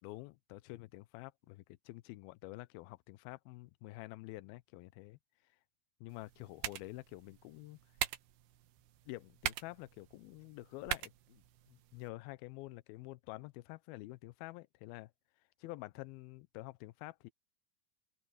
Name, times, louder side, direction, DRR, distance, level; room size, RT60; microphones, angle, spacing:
voice 1, 0.0-5.2 6.0-7.8 9.1-11.4 11.7-15.1 15.6-17.3, left 20 dB, 85° left, 2.3 m, -48 dB
sound 1, 6.1-12.1, right 13 dB, 75° right, 3.1 m, -43 dB
open air
omnidirectional pair, 4.9 m